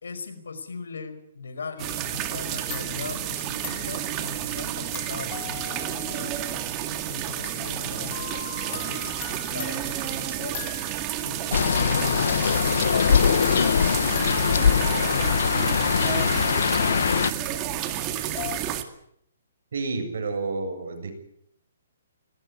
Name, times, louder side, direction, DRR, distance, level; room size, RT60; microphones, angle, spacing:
voice 1, 0.0-6.4 7.1-8.4 8.8-10.6 11.2-11.8 12.4-15.3, left 5 dB, 85° left, 9 dB, 5.1 m, -39 dB
sound 1, 1.8-2.4 2.7-11.2 11.6-18.6, left 15 dB, 35° left, 1.4 m, -42 dB
sound 2, 1.8-18.8, right 11 dB, 25° right, 2.0 m, -31 dB
sound 3, 11.5-17.3, left 7 dB, 70° left, 1.1 m, -22 dB
voice 2, 19.7-21.1, right 3 dB, 70° right, 6 dB, 7.3 m, -30 dB
20.5 x 18.5 x 9.7 m, 0.72 s
hypercardioid pair, 155°, 0 cm